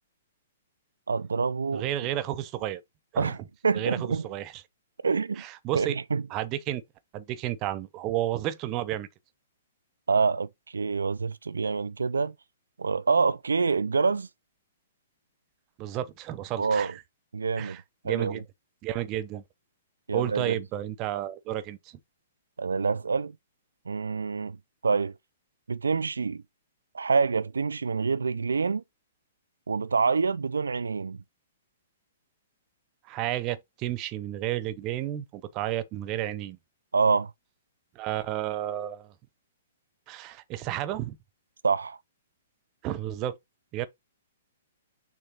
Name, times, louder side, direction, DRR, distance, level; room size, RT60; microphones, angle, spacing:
voice 1, 1.1-1.9 3.2-3.4 3.6-4.3 5.0-5.4 5.7-6.2 10.1-10.5 10.7-12.3 12.8-14.3 16.6-16.9 17.3-17.8 18.0-18.4 20.1-20.6 22.6-23.3 23.9-24.6 24.8-25.1 25.7-26.4 26.9-28.8 29.7-31.2 36.9-37.3 41.6-42.0, right 5 dB, 80° right, 0.5 m, -26 dB
voice 2, 1.7-2.8 3.1-3.3 3.7-4.5 5.4-5.9 6.3-6.8 7.1-9.1 15.8-17.0 17.6-18.4 18.8-19.4 20.1-21.8 33.1-36.6 37.9-39.1 40.1-41.2 42.8-43.4 43.7-43.9, right 13 dB, 35° right, 0.9 m, -32 dB
6.7 x 3.3 x 4.5 m
hypercardioid pair, 120°, 0 cm